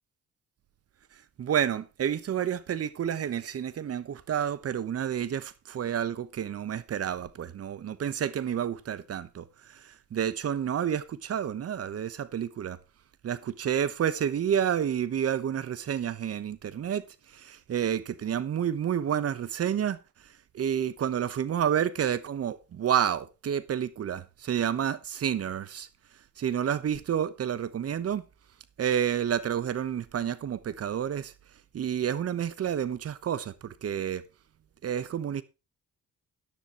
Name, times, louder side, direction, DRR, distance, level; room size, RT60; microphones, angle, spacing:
voice 1, 1.4-12.8 13.2-17.0 17.3-20.0 20.5-25.9 26.4-28.2 28.8-31.3 31.7-34.2 34.8-35.4, right 9 dB, 50° right, 1.1 m, -29 dB
13.5 x 10.0 x 3.0 m
cardioid pair, 90°, 30 cm